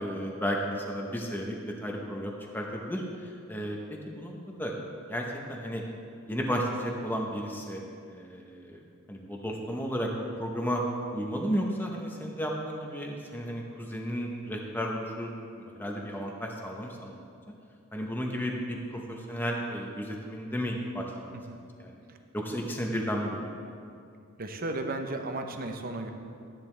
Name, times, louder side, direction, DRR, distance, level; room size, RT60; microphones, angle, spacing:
voice 1, 0.0-4.3 4.6-4.7 5.1-5.8 6.3-7.8 8.1-8.8 9.1-10.1 10.4-10.8 11.1-15.3 15.6-17.2 17.9-21.4 21.8-22.0 22.3-23.7, equal, 10° left, 0 dB, 0.9 m, -33 dB
voice 2, 24.4-26.1, right 2 dB, 45° right, 5 dB, 0.8 m, -34 dB
13.0 x 10.5 x 3.3 m, 2.4 s
head